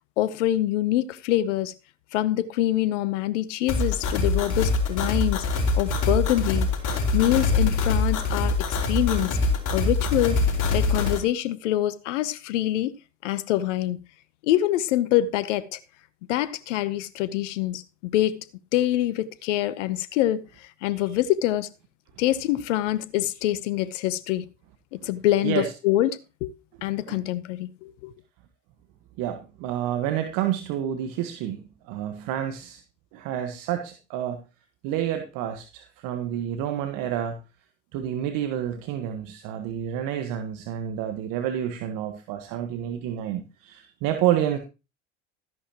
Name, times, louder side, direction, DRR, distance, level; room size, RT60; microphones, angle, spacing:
voice 1, 0.2-1.7 2.1-5.4 5.7-6.7 7.1-9.4 9.7-10.4 10.7-13.0 13.2-14.0 14.4-15.8 16.3-18.4 18.7-21.7 22.2-24.5 24.9-26.5 26.8-28.1, left 14 dB, 75° left, 0.9 m, -25 dB
sound 1, 3.7-11.2, left 3 dB, 55° left, 4.7 m, -24 dB
voice 2, 29.2-32.8 33.1-34.4 34.8-37.4 37.9-44.6, right 11 dB, 60° right, 1.5 m, -29 dB
13.5 x 10.5 x 3.0 m
hypercardioid pair, 75°, 37 cm